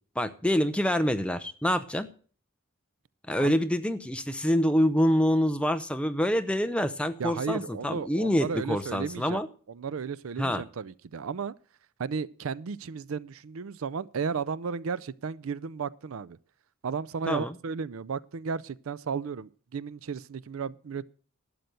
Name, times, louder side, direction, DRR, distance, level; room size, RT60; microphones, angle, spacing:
voice 1, 0.2-2.1 3.3-9.5 10.4-10.6 17.3-17.5, equal, 5° left, 0.6 m, -26 dB
voice 2, 7.2-9.4 9.7-11.5 12.0-16.4 16.8-21.1, right 5 dB, 70° right, 0.5 m, -34 dB
12.0 x 7.8 x 6.8 m
head